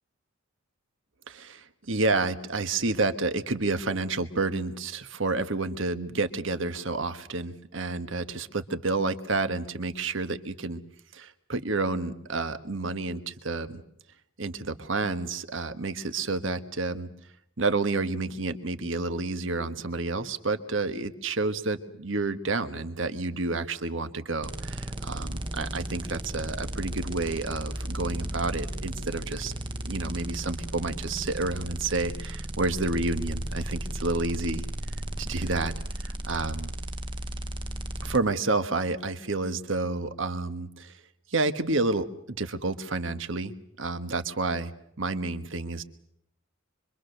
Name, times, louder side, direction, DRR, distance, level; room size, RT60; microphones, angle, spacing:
voice 1, 1.3-10.8 11.1-13.8 14.4-17.1 17.6-29.5 29.8-34.6 35.2-35.7 36.0-36.7 38.0-41.0 41.3-44.7 45.0-45.8, right 3 dB, 65° right, 9 dB, 1.5 m, -30 dB
sound 1, 24.4-38.2, right 1 dB, 25° right, 0.9 m, -35 dB
25.5 x 23.5 x 6.7 m, 0.74 s
head